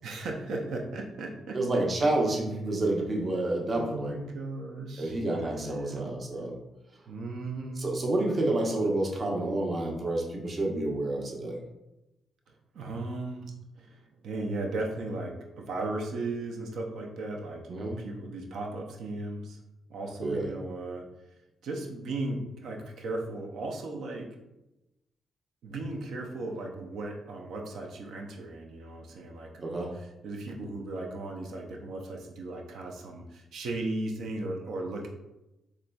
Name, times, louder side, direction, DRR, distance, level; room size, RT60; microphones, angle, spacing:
voice 1, 0.0-1.6 2.0-2.1 3.7-5.2 5.6-6.0 7.1-7.9 8.2-8.4 12.5-19.6 19.9-21.3 21.6-24.4 25.6-35.1, right 2 dB, 75° right, 1 dB, 0.6 m, -36 dB
voice 2, 1.5-4.1 5.0-6.6 7.8-11.6 17.7-18.0 20.2-20.5 29.6-29.9, right 2 dB, 45° right, -1 dB, 0.8 m, -29 dB
3.8 x 3.1 x 2.2 m, 0.94 s
supercardioid pair, 55°, 0 cm